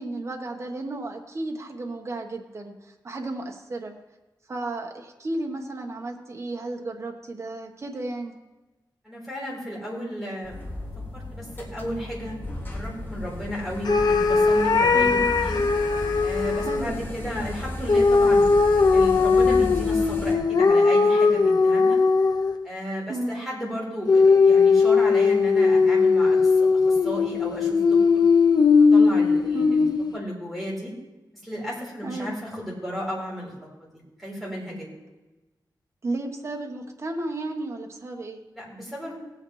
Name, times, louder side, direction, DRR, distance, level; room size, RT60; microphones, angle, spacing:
voice 1, 0.0-3.9 4.5-8.4 14.9-15.3 16.5-17.1 23.1-23.4 29.5-29.9 32.0-32.3 36.0-38.4, right 2 dB, 40° right, 2 dB, 1.2 m, -33 dB
voice 2, 9.0-10.6 11.1-12.4 12.7-15.6 16.2-22.0 22.6-28.3 28.9-29.9 30.1-30.9 31.4-33.5 33.8-33.9 34.2-34.9 38.5-39.2, equal, ahead, -6 dB, 4.4 m, -33 dB
sound 1, 10.4-20.3, left 1 dB, 30° left, 2.1 m, -35 dB
sound 2, 13.9-16.8 17.9-22.7 24.1-30.2, left 4 dB, 60° left, 0.6 m, -19 dB
18.0 x 8.9 x 3.2 m, 1.1 s
wide cardioid pair, 155°, 8 cm